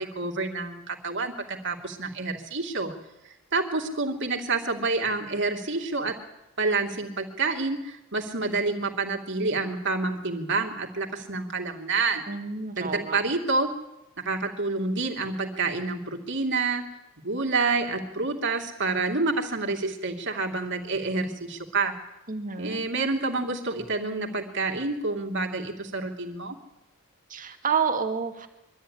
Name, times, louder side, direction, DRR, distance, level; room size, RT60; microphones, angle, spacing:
voice 1, 0.0-2.9 3.5-6.2 6.6-12.3 12.8-13.7 14.2-16.9 17.2-21.9 22.6-26.6, right 3 dB, 55° right, 3 dB, 2.8 m, -28 dB
voice 2, 12.3-13.2 22.3-22.8 27.3-28.5, right 6 dB, 35° right, 6 dB, 2.1 m, -29 dB
23.5 x 13.5 x 10.0 m, 0.90 s
head